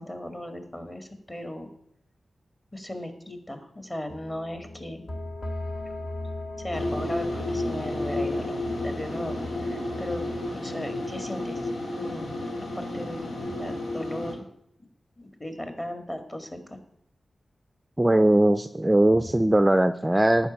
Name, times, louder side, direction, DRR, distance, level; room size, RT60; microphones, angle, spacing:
voice 1, 0.0-1.7 2.7-5.0 6.6-8.6 8.8-10.2 10.6-11.6 12.0-12.4 12.8-14.5 15.2-16.8, left 1 dB, 20° left, 7 dB, 1.9 m, -36 dB
sound 1, 4.1-10.4, left 2 dB, 45° left, 1.6 m, -37 dB
sound 2, 6.7-14.4, left 1 dB, 90° left, 2.4 m, -32 dB
voice 2, 18.0-20.5, right 1 dB, 15° right, 11 dB, 0.4 m, -20 dB
11.5 x 5.1 x 8.7 m, 0.75 s
wide cardioid pair, 75°, 0 cm